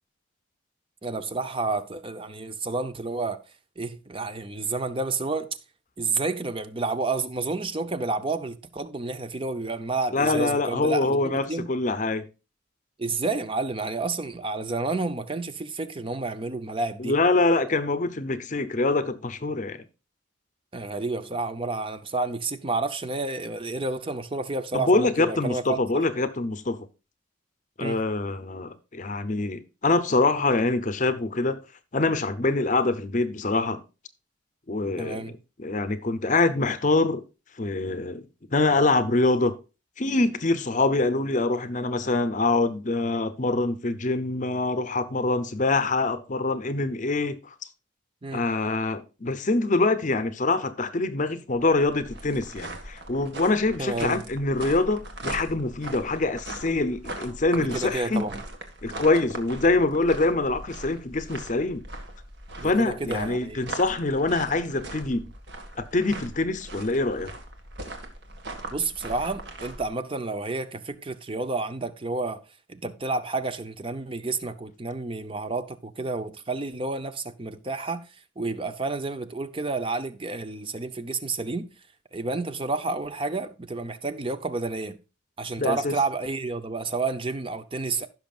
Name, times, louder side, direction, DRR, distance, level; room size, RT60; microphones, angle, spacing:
voice 1, 1.0-3.4 3.8-5.6 6.0-11.7 13.0-17.2 20.7-26.0 27.8-28.0 35.0-35.4 48.2-48.4 53.8-54.2 57.5-58.4 62.6-63.7 68.7-72.4 72.7-78.0 78.4-81.7 82.1-85.0 85.4-88.1, right 3 dB, 25° right, 0.6 m, -30 dB
voice 2, 10.1-12.3 17.0-19.8 24.7-26.9 27.8-31.6 31.9-33.8 34.7-35.2 35.6-37.2 37.6-38.2 38.5-39.6 40.0-47.5 48.3-58.3 58.8-61.8 62.6-65.3 65.8-67.3 85.6-85.9, left 2 dB, 40° left, 0.7 m, -25 dB
sound 1, 51.5-69.9, right 2 dB, 55° right, 1.7 m, -40 dB
16.0 x 6.1 x 2.4 m
head